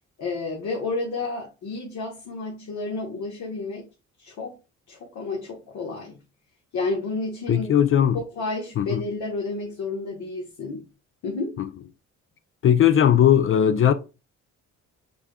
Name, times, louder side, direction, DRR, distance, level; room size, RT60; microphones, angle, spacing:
voice 1, 0.2-3.8 4.2-4.6 4.9-6.2 6.7-7.7 8.1-10.8 11.2-11.6, left 3 dB, 75° left, 1.3 m, -31 dB
voice 2, 7.5-8.2 8.8-9.0 11.6-11.7 12.6-13.9, left 9 dB, 45° left, 0.4 m, -18 dB
6.0 x 3.5 x 2.2 m
cardioid pair, 90°, 30 cm